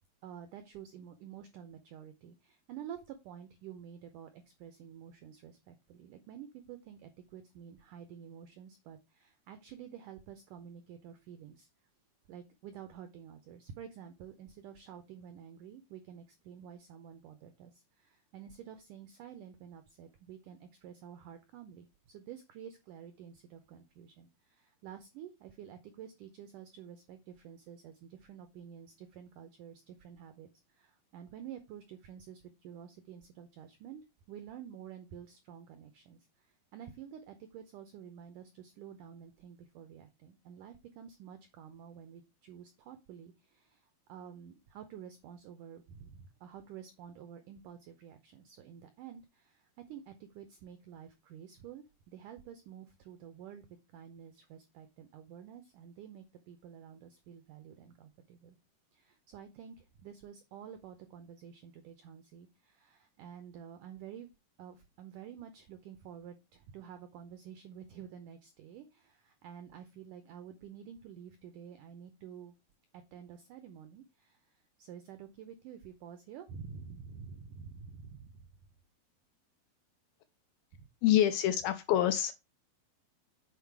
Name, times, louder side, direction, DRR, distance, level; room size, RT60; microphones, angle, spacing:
voice 1, 0.2-11.7 12.3-58.6 58.9-64.3 64.6-72.5 72.9-78.4 80.7-80.9, right 8 dB, 85° right, 1.8 m, -50 dB
voice 2, 81.0-82.3, left 12 dB, 80° left, 2.2 m, -26 dB
7.7 x 4.5 x 4.7 m
omnidirectional pair, 4.8 m